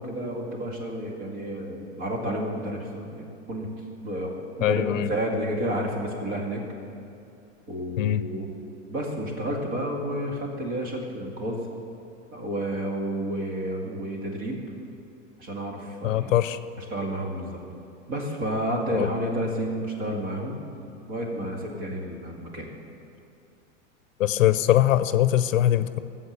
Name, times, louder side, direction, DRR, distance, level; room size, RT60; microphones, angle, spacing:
voice 1, 0.0-3.7 4.0-4.3 4.6-6.6 7.7-8.6 8.9-11.6 12.3-14.6 15.4-16.3 16.8-17.6 18.1-20.6 21.1-22.7, right 1 dB, 30° right, 0 dB, 2.2 m, -30 dB
voice 2, 4.6-5.1 8.0-8.2 16.0-16.6 18.9-19.1 24.2-26.0, left 12 dB, 90° left, 13 dB, 0.7 m, -22 dB
14.5 x 7.7 x 6.6 m, 2.5 s
supercardioid pair, 155°, 38 cm